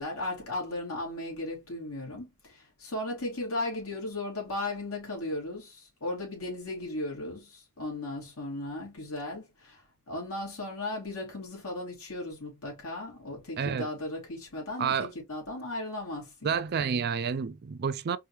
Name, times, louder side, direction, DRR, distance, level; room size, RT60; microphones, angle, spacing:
voice 1, 0.0-9.8 10.1-16.5, left 2 dB, 70° left, 2.7 m, -36 dB
voice 2, 13.6-13.9 14.8-15.1 16.4-18.2, right 6 dB, 45° right, 0.4 m, -29 dB
4.8 x 2.7 x 3.1 m
head